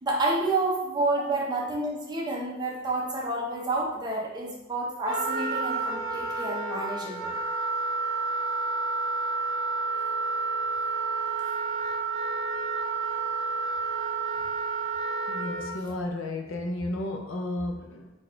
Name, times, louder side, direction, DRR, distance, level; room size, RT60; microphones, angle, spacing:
voice 1, 0.0-7.3 11.8-11.9, right 2 dB, 20° right, -3 dB, 0.8 m, -29 dB
Wind instrument woodwind instrument, 5.0-15.7, right 4 dB, 65° right, 0.8 m, -30 dB
voice 2, 15.3-18.1, left 1 dB, 70° left, 3 dB, 0.5 m, -33 dB
4.0 x 2.5 x 4.3 m, 0.97 s
head